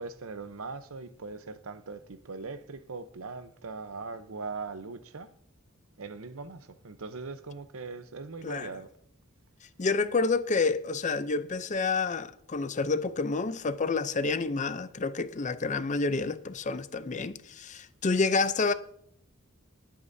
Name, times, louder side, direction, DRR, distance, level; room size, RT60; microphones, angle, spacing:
voice 1, 0.0-5.3 6.0-8.9, right 4 dB, 75° right, 0.8 m, -40 dB
voice 2, 9.8-18.7, left 4 dB, 35° left, 0.6 m, -29 dB
19.5 x 8.7 x 2.7 m
head